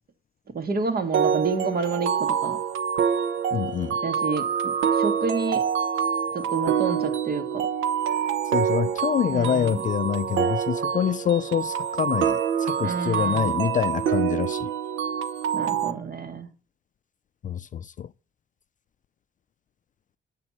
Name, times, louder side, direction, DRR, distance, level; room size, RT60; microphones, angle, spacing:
voice 1, 0.5-2.6 4.0-5.6 6.3-7.7 9.3-9.8 12.8-13.6 15.5-16.5, right 4 dB, 50° right, 2.0 m, -29 dB
sound 1, 1.1-15.9, right 8 dB, 90° right, 0.9 m, -26 dB
voice 2, 3.5-4.0 8.5-14.7 17.4-18.1, left 9 dB, 40° left, 0.4 m, -26 dB
9.7 x 8.4 x 3.0 m
cardioid pair, 90°, 20 cm